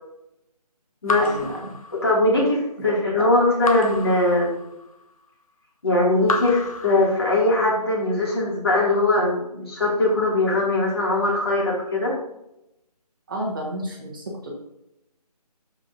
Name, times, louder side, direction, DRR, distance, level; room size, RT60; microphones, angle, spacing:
Raindrop / Drip, 1.1-2.5 3.6-5.0 6.2-7.6, left 2 dB, 60° left, 0.9 m, -31 dB
voice 1, 1.2-1.8 2.8-2.9 3.2-3.3 13.3-14.5, equal, 30° right, -2 dB, 1.6 m, -31 dB
voice 2, 2.0-4.6 5.8-12.1, left 2 dB, 35° left, -4 dB, 2.5 m, -21 dB
13.0 x 4.8 x 2.7 m, 0.85 s
figure-of-eight pair, 170°, 21 cm